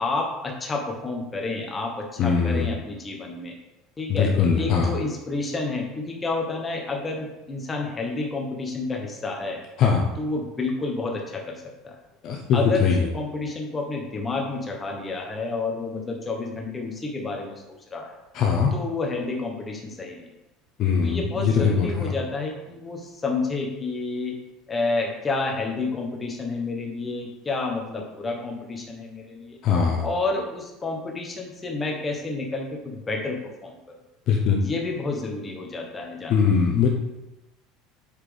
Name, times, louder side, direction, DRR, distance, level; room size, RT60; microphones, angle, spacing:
voice 1, 0.0-3.5 4.0-9.6 10.2-12.0 12.5-18.2 18.7-20.2 21.0-24.4 24.7-29.6 30.0-33.8 34.6-36.3, left 3 dB, 15° left, 0 dB, 1.1 m, -30 dB
voice 2, 2.2-2.7 4.1-4.9 9.8-10.1 12.2-13.1 18.3-18.7 20.8-22.1 29.6-30.0 34.3-34.6 36.3-36.9, left 6 dB, 35° left, 0 dB, 0.8 m, -21 dB
8.1 x 4.3 x 5.1 m, 0.98 s
cardioid pair, 175°, 0 cm